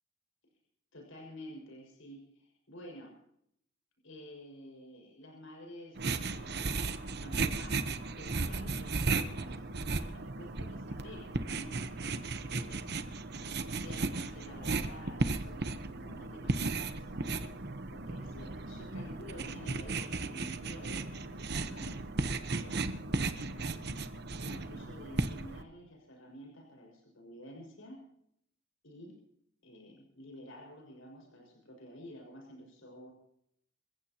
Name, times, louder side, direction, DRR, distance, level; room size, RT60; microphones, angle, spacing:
voice 1, 0.9-3.1 4.0-6.7 7.2-7.9 8.2-11.7 12.0-12.9 13.5-22.0 22.4-23.9 24.4-28.0 28.8-29.2 29.6-33.1, equal, 80° left, 0 dB, 6.0 m, -50 dB
sound 1, 6.0-25.6, right 3 dB, 55° right, 1.0 m, -35 dB
27.5 x 15.5 x 3.0 m, 0.72 s
head